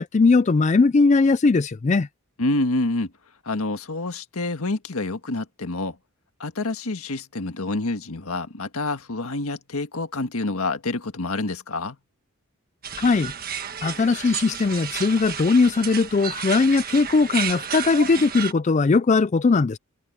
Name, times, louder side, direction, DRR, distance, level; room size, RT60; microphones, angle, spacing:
voice 1, 0.0-2.1 13.0-13.3 13.8-19.8, left 4 dB, 30° left, 0.4 m, -19 dB
voice 2, 2.4-3.1 3.4-5.9 6.4-12.0, left 2 dB, 85° left, 1.6 m, -27 dB
sound 1, 12.8-18.5, right 8 dB, 40° right, 1.5 m, -32 dB
head